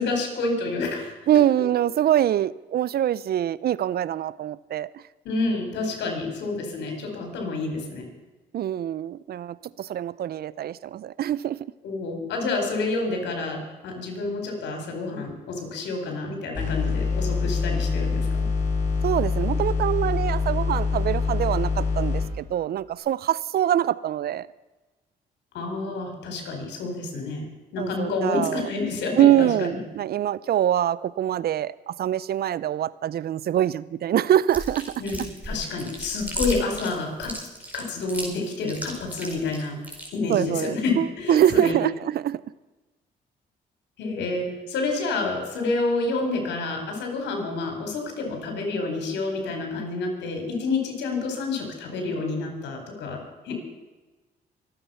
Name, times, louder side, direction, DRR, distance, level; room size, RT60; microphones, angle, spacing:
voice 1, 0.0-1.1 5.2-8.1 11.8-18.3 25.5-27.5 27.7-29.8 35.0-37.3 37.7-39.8 40.1-41.7 44.0-53.2 53.4-53.5, left 3 dB, 85° left, 4.5 m, -28 dB
voice 2, 1.3-4.9 8.5-11.7 19.0-24.5 27.8-28.7 29.2-35.0 40.3-42.4, right 11 dB, 60° right, 0.6 m, -24 dB
sound 1, 16.5-22.3, left 4 dB, 45° left, 6.7 m, -25 dB
Chewing mastication, 34.5-40.1, equal, 10° right, 4.5 m, -34 dB
24.0 x 9.0 x 5.7 m
cardioid pair, 70°, 18 cm